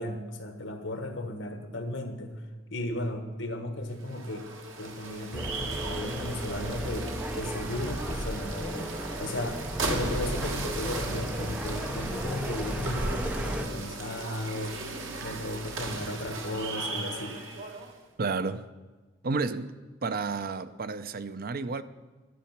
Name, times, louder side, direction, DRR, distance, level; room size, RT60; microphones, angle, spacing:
voice 1, 0.0-2.4 2.7-4.5 4.8-8.9 9.2-14.8 15.2-17.4, left 1 dB, 70° left, 1.5 m, -35 dB
sound 1, 3.9-18.0, right 3 dB, 85° right, 1.5 m, -37 dB
sound 2, 5.3-13.7, equal, 5° right, 0.6 m, -35 dB
sound 3, 12.3-17.0, right 2 dB, 35° right, 1.3 m, -53 dB
voice 2, 18.2-18.7 19.2-19.7 20.0-21.8, right 4 dB, 50° right, 0.5 m, -31 dB
11.5 x 10.5 x 5.9 m
head